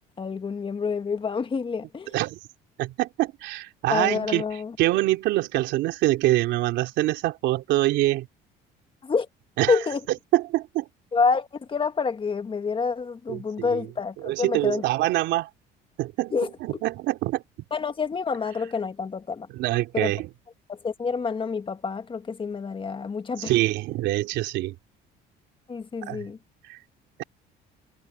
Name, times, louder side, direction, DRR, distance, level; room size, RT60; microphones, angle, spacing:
voice 1, 0.2-2.1 3.9-4.7 9.0-9.3 9.7-10.0 11.1-14.8 16.3-16.5 17.7-19.5 19.9-20.1 20.7-23.5 25.7-26.4, left 5 dB, 30° left, 1.7 m, -27 dB
voice 2, 2.8-4.4 4.8-8.3 9.6-9.8 10.3-10.8 13.3-13.9 14.2-15.5 16.0-16.3 16.6-17.4 19.5-20.3 23.4-24.7 26.1-26.3 26.6-26.8, right 16 dB, 75° right, 3.2 m, -25 dB
cardioid pair, 105°, 19 cm